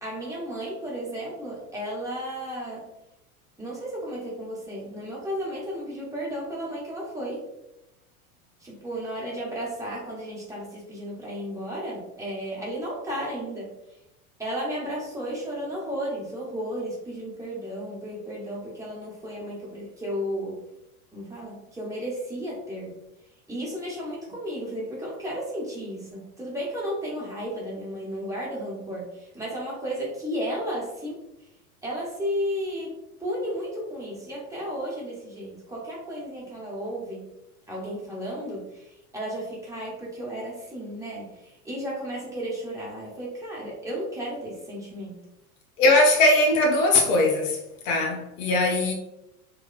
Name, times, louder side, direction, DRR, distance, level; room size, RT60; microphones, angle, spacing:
voice 1, 0.0-2.9 3.6-7.4 8.6-13.7 14.4-20.6 21.1-22.9 23.5-31.2 31.8-32.9 33.2-37.3 37.7-38.9 39.1-45.2, equal, 5° right, -6 dB, 0.9 m, -33 dB
voice 2, 45.8-47.6 47.8-48.9, left 2 dB, 60° left, 1 dB, 0.7 m, -20 dB
2.9 x 2.1 x 2.4 m, 0.90 s
hypercardioid pair, 90°, 45 cm